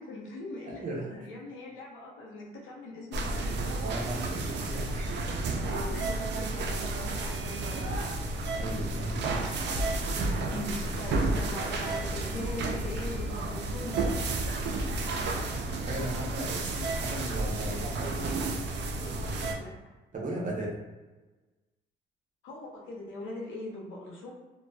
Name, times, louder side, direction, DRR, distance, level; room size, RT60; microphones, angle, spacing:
voice 1, 0.0-3.6 5.9-6.1 6.4-7.9 10.5-14.0 19.6-19.7 22.4-24.3, left 2 dB, 80° left, -2 dB, 0.8 m, -41 dB
voice 2, 0.7-1.2 3.8-5.2 5.5-5.7 8.6-9.4 15.9-18.4 20.1-20.7, right 1 dB, 40° right, -3 dB, 0.8 m, -36 dB
sound 1, 3.1-19.5, right 2 dB, 60° right, 0.4 m, -31 dB
2.5 x 2.2 x 2.2 m, 1.2 s
cardioid pair, 90°, 20 cm